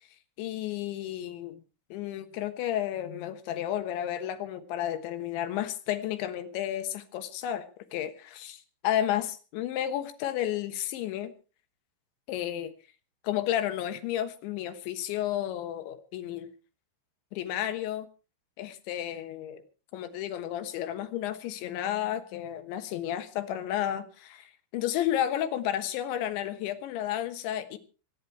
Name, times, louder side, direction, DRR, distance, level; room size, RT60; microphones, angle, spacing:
voice 1, 0.4-1.6 1.9-8.6 8.8-11.3 12.3-12.7 13.2-16.5 17.3-18.1 18.6-19.6 19.9-27.8, left 11 dB, 70° left, 10 dB, 3.4 m, -32 dB
25.0 x 10.0 x 4.6 m, 0.36 s
omnidirectional pair, 5.8 m